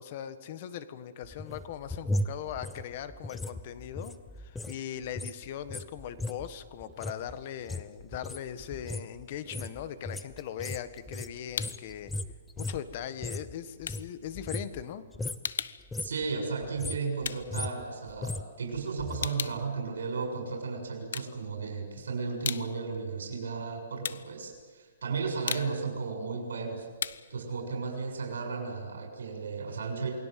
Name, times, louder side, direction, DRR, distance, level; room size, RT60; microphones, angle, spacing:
voice 1, 0.0-12.1 12.6-15.0, left 10 dB, 40° left, 12 dB, 1.5 m, -40 dB
sound 1, 1.2-4.8 5.0-13.5 13.8-14.9 15.1-15.5 15.8-16.3 16.6-19.3 19.6-19.7, left 1 dB, 5° left, 0.8 m, -37 dB
sound 2, 10.8-11.9 12.3-18.5 18.8-20.6 21.0-21.9 22.2-28.9, left 7 dB, 70° left, 1.0 m, -39 dB
voice 2, 16.0-26.9 27.3-30.2, right 4 dB, 90° right, 2 dB, 6.8 m, -34 dB
28.5 x 20.5 x 7.7 m, 1.5 s
hypercardioid pair, 165°, 0 cm